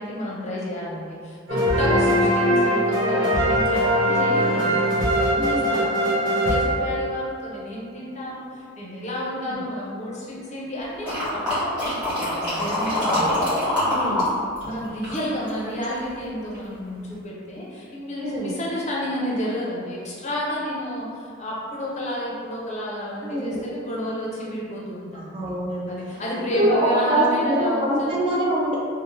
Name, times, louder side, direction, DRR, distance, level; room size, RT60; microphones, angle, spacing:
voice 1, 0.0-14.2 14.6-25.5 25.9-28.3, left 1 dB, 35° left, -6 dB, 0.5 m, -31 dB
sound 1, 1.5-7.4, equal, 60° right, 0.7 m, -21 dB
voice 2, 1.8-2.3 5.4-5.8 9.3-9.6 13.0-13.4 13.9-14.3 18.2-18.5 23.2-23.7 25.1-25.9 26.5-28.8, right 1 dB, 25° right, -5 dB, 0.3 m, -25 dB
sound 2, 11.0-14.3 14.6-16.0 16.5-16.6, left 1 dB, 5° right, 1.2 m, -24 dB
2.6 x 2.0 x 3.1 m, 2.2 s
head